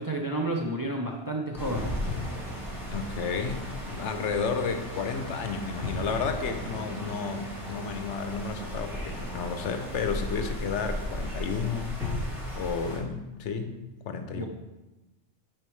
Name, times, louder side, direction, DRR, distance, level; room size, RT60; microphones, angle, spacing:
voice 1, 0.0-1.9 14.3-14.5, right 1 dB, 25° right, 0 dB, 0.5 m, -31 dB
sound 1, 1.5-13.0, left 1 dB, ahead, 2.5 m, -35 dB
voice 2, 2.9-12.0 12.5-13.8 14.1-14.5, left 5 dB, 80° left, 7 dB, 1.0 m, -32 dB
8.9 x 4.9 x 3.1 m, 1.1 s
omnidirectional pair, 1.2 m